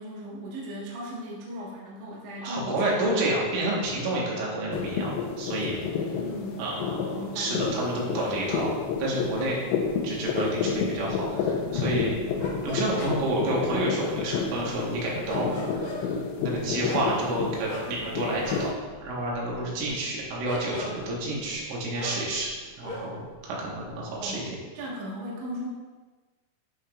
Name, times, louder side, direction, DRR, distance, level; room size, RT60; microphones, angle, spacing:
voice 1, 0.0-3.2 6.2-6.7 7.1-7.6 24.2-24.5 24.7-25.7, equal, 60° right, -6 dB, 2.2 m, -37 dB
voice 2, 2.4-5.1 5.4-5.8 6.6-6.8 7.3-8.7 9.0-9.6 10.0-12.1 12.6-15.5 15.7-18.7 19.0-24.6, right 1 dB, 80° right, -4 dB, 4.0 m, -29 dB
sound 1, 4.7-18.7, left 5 dB, 80° left, 2.9 m, -30 dB
sound 2, 8.1-23.4 23.6-24.4, left 1 dB, 50° left, 1.5 m, -40 dB
11.5 x 5.7 x 2.5 m, 1.3 s
omnidirectional pair, 5.7 m